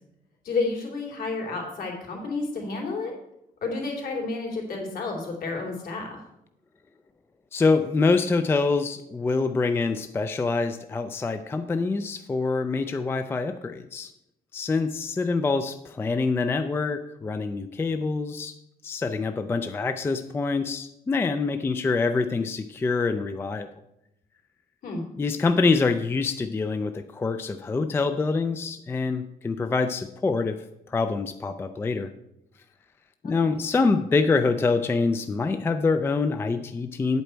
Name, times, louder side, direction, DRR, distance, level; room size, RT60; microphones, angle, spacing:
voice 1, 0.4-3.1 3.6-6.2 24.8-25.0 33.2-33.6, left 3 dB, 65° left, 0 dB, 2.8 m, -31 dB
voice 2, 7.5-14.1 14.5-18.5 18.8-23.7 25.2-32.1 33.2-37.2, left 4 dB, 15° left, 9 dB, 0.3 m, -25 dB
8.8 x 8.2 x 4.5 m, 0.84 s
cardioid pair, 175°, 16 cm